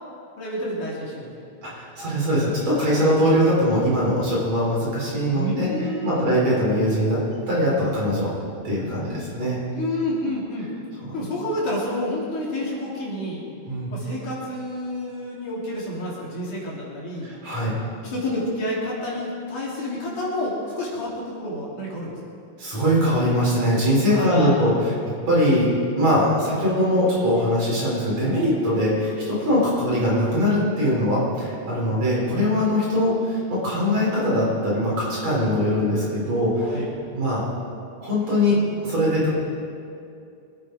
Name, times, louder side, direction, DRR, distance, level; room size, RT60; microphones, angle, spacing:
voice 1, 0.4-1.3 1.7-1.8 3.0-3.4 5.3-6.3 9.7-10.7 11.1-13.4 13.9-17.3 18.0-22.1 24.1-24.5 31.1-31.3 36.6-36.9, left 1 dB, 55° left, -5 dB, 4.1 m, -29 dB
voice 2, 1.6-5.7 6.0-8.3 8.6-9.6 13.7-13.9 17.2-17.7 22.6-24.7 25.3-25.7 26.0-36.8 37.1-37.4 38.0-38.6 38.8-39.3, equal, 45° right, -7 dB, 5.6 m, -21 dB
24.0 x 9.4 x 4.8 m, 2.6 s
omnidirectional pair, 4.4 m